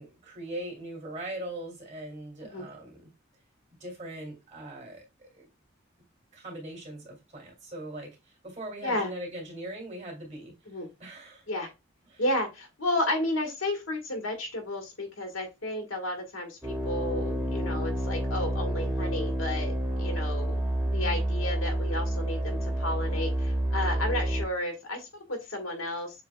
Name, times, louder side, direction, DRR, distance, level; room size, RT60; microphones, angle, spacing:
voice 1, 0.0-3.1 3.8-5.5 6.3-11.5 12.1-12.2, right 1 dB, 35° right, 0 dB, 2.5 m, -41 dB
voice 2, 12.2-20.6 20.9-26.2, left 1 dB, 80° left, 3 dB, 1.5 m, -32 dB
sound 1, 16.6-24.4, right 1 dB, 10° right, 1.2 m, -29 dB
7.0 x 3.3 x 2.3 m, 0.25 s
head